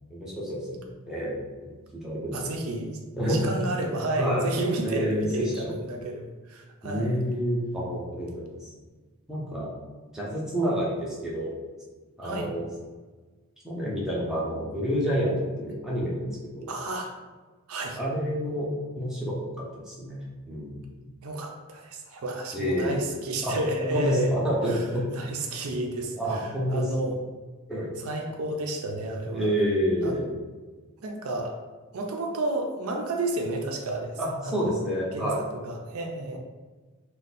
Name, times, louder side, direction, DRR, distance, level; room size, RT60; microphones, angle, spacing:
voice 1, 0.1-2.5 3.2-3.5 4.2-4.5 4.8-5.3 5.5-5.7 6.8-8.7 9.3-9.7 10.1-11.5 12.2-12.7 13.6-16.7 18.0-20.9 22.5-23.0 23.4-23.6 23.9-25.0 26.1-26.8 27.7-27.9 29.2-30.3 34.2-35.4, equal, 5° right, -6 dB, 0.6 m, -29 dB
voice 2, 2.3-7.2 12.2-12.5 16.7-17.1 17.7-18.0 21.2-24.3 24.7-24.8 25.1-27.2 28.0-29.5 30.0-30.2 31.0-31.6 31.9-34.2 34.4-34.9 35.1-36.4, right 2 dB, 70° right, 2 dB, 0.5 m, -31 dB
2.5 x 2.2 x 4.0 m, 1.3 s
head